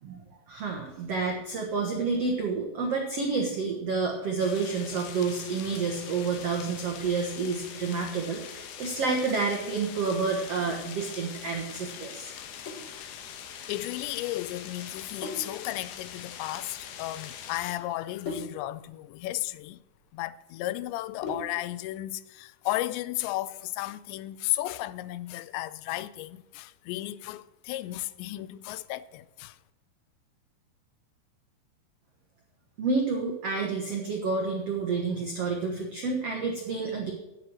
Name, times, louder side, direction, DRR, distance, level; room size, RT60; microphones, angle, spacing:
voice 1, 0.0-12.3 32.8-37.1, right 4 dB, 80° right, 1.4 m, -29 dB
sound 1, 4.4-17.8, left 8 dB, 70° left, 2.8 m, -43 dB
Sink (filling or washing), 12.7-21.8, left 3 dB, 35° left, 3.2 m, -43 dB
voice 2, 13.7-19.8 20.1-29.6, left 16 dB, 90° left, 2.9 m, -34 dB
10.0 x 9.3 x 6.3 m
omnidirectional pair, 5.0 m